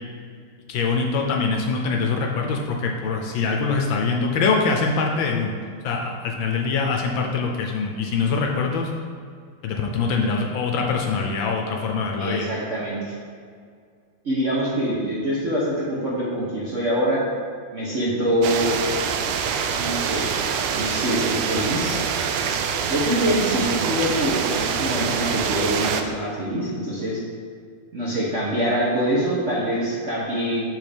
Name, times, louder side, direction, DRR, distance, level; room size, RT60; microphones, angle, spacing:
voice 1, 0.7-5.5 5.8-8.9 9.6-12.5, left 4 dB, 75° left, 1 dB, 1.3 m, -23 dB
voice 2, 12.2-13.1 14.2-17.2 17.7-18.7 19.7-20.4 20.7-22.0 22.9-27.2 27.9-30.6, equal, 45° right, -6 dB, 1.0 m, -24 dB
Seamless Rain Loop, 18.4-26.0, right 7 dB, 85° right, 1.5 m, -25 dB
6.4 x 6.1 x 3.4 m, 2.2 s
omnidirectional pair, 2.4 m